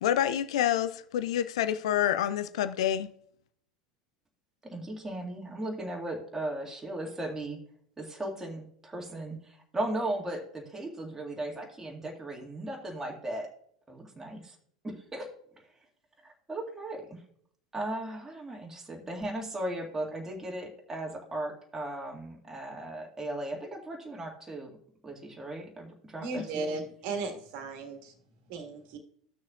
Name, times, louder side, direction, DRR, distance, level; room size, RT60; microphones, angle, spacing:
voice 1, 0.0-3.1, left 11 dB, 65° left, 0.5 m, -27 dB
voice 2, 4.6-7.6 8.0-13.5 13.9-14.6 14.8-15.3 16.5-17.2 17.7-24.7 25.0-26.8, right 1 dB, 15° right, 2.0 m, -37 dB
voice 3, 26.2-28.1 28.5-29.0, right 3 dB, 55° right, 1.7 m, -36 dB
14.5 x 6.4 x 2.4 m
figure-of-eight pair, 80°, 3 cm